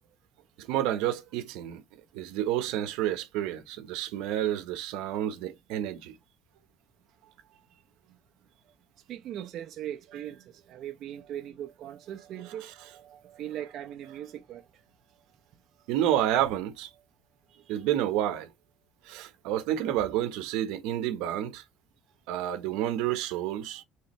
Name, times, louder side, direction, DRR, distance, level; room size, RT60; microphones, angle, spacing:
voice 1, 0.6-1.8 2.1-6.1 10.1-10.2 12.4-13.4 14.1-14.2 15.9-16.9 17.7-18.5 19.0-21.6 22.3-23.8, right 12 dB, 75° right, 1.0 m, -30 dB
voice 2, 9.1-10.4 10.7-12.7 13.4-14.6 17.7-17.8, right 11 dB, 40° right, 0.7 m, -39 dB
4.8 x 3.3 x 3.1 m
cardioid pair, 175°, 0 cm